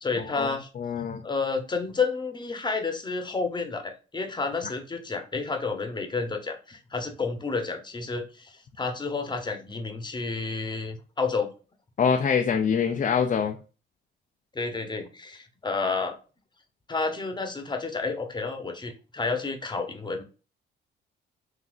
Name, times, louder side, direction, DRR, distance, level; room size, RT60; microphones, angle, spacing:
voice 1, 0.0-0.7 1.2-11.5 14.5-16.2 16.9-20.2, left 4 dB, 20° left, 5 dB, 1.0 m, -30 dB
voice 2, 0.8-1.2 12.0-13.6, left 6 dB, 40° left, 3 dB, 0.6 m, -24 dB
6.0 x 2.7 x 2.6 m, 0.34 s
cardioid pair, 90°, 20 cm